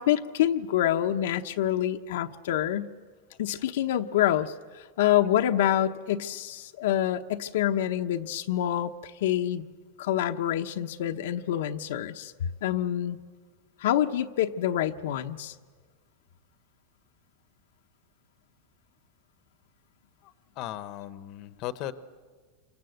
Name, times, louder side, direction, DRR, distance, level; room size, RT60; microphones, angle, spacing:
voice 1, 0.0-2.9 3.4-9.7 10.0-13.2 13.8-15.5, left 11 dB, 75° left, 5 dB, 0.9 m, -27 dB
voice 2, 20.2-21.9, left 13 dB, 40° left, 13 dB, 1.0 m, -37 dB
28.0 x 25.0 x 8.0 m, 1.6 s
supercardioid pair, 150°, 0 cm